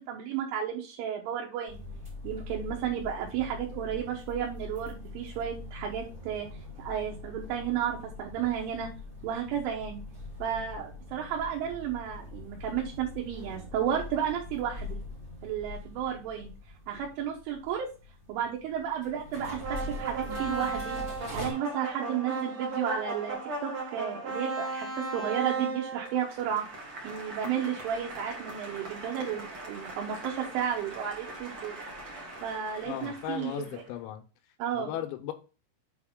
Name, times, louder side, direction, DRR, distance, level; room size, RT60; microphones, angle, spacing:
voice 1, 0.0-1.8 2.2-6.5 6.8-8.9 9.2-10.0 10.4-15.0 15.4-16.5 16.9-17.9 18.3-21.0 21.3-26.7 27.0-31.8 32.4-33.8 34.6-34.9, right 9 dB, 75° right, -1 dB, 3.4 m, -33 dB
sound 1, 1.7-21.5, left 2 dB, 35° right, 0.8 m, -43 dB
sound 2, 19.6-33.8, right 3 dB, 55° right, 1.4 m, -37 dB
voice 2, 32.8-34.2 34.8-35.3, left 11 dB, 90° left, 6 dB, 3.7 m, -36 dB
7.9 x 4.7 x 3.7 m, 0.33 s
omnidirectional pair, 6.0 m